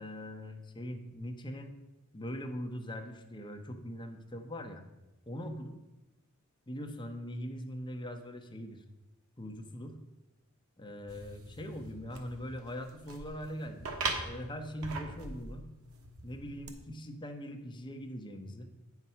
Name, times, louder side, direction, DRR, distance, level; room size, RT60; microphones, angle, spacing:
voice 1, 0.0-1.7 2.1-4.8 5.3-5.7 6.7-8.8 9.4-10.0 10.8-13.9 14.2-15.7 16.2-18.7, equal, 20° left, 4 dB, 0.9 m, -41 dB
sound 1, 11.1-16.7, right 3 dB, 80° right, 1.2 m, -41 dB
8.8 x 6.0 x 5.5 m, 1.0 s
head